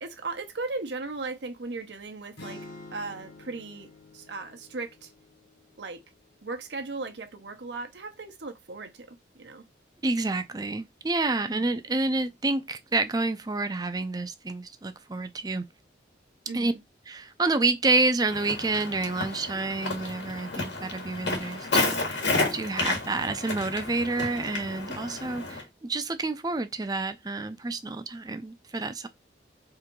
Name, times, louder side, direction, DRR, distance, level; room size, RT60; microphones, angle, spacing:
voice 1, 0.0-2.6 2.9-5.1 5.8-6.0 6.4-9.7 11.5-11.7 16.5-16.8, right 3 dB, 75° right, 0.8 m, -37 dB
sound 1, 2.4-6.5, left 2 dB, 70° left, 1.3 m, -48 dB
voice 2, 10.0-15.7 16.5-16.7 17.1-22.3 22.5-29.1, right 3 dB, 20° right, 0.4 m, -29 dB
Walk footsteps, 18.3-25.6, left 3 dB, 90° left, 1.9 m, -31 dB
3.7 x 2.7 x 4.5 m
head